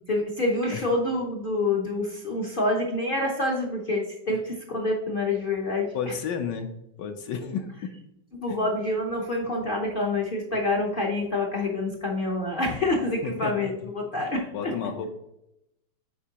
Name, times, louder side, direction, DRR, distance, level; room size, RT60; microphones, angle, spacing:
voice 1, 0.0-6.1 8.3-14.7, left 2 dB, 55° left, 0 dB, 0.6 m, -27 dB
voice 2, 5.9-6.7 7.0-7.9 8.5-8.6 13.2-13.5 14.5-15.1, left 7 dB, 75° left, 5 dB, 1.2 m, -32 dB
8.2 x 4.4 x 2.8 m, 0.83 s
omnidirectional pair, 2.1 m